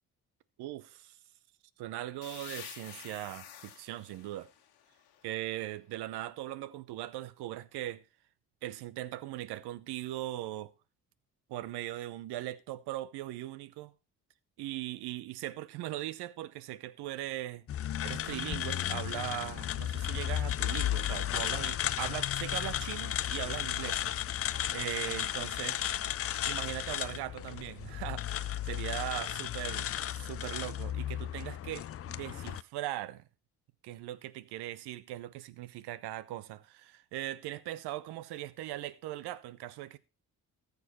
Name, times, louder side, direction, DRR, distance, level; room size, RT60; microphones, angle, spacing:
voice 1, 0.6-1.2 1.8-4.5 5.2-8.0 8.6-10.7 11.5-13.9 14.6-17.7 18.0-24.0 24.7-25.8 26.5-33.2 33.8-40.0, right 14 dB, 80° right, 0.8 m, -39 dB
sound 1, 2.2-5.8, left 10 dB, 90° left, 1.5 m, -50 dB
sound 2, 17.7-32.6, left 11 dB, 40° left, 0.4 m, -34 dB
13.5 x 7.1 x 4.2 m
supercardioid pair, 55°, 39 cm